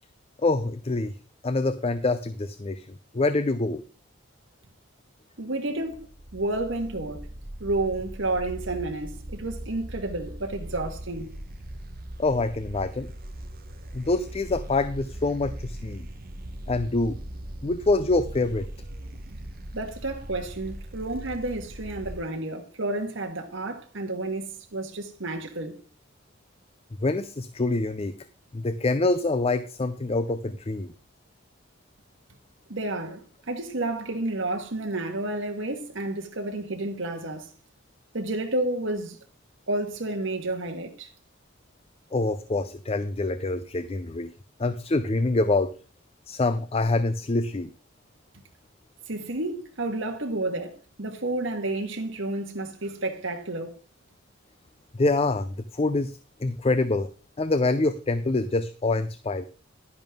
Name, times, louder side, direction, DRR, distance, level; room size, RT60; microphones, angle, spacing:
voice 1, 0.4-1.1 1.4-2.9 3.1-3.8 12.2-13.1 13.9-16.1 16.7-17.2 17.6-18.7 27.0-28.1 28.5-30.9 42.1-44.3 44.6-45.7 46.3-47.7 54.9-57.1 57.4-59.4, left 2 dB, 30° left, 0.5 m, -25 dB
voice 2, 5.4-7.2 7.6-11.3 19.7-25.8 32.7-33.2 33.5-37.5 38.1-39.2 39.7-41.1 49.1-53.7, right 2 dB, 65° right, 1.6 m, -31 dB
sound 1, 5.7-22.2, right 1 dB, 45° right, 1.0 m, -40 dB
11.0 x 10.5 x 3.6 m
head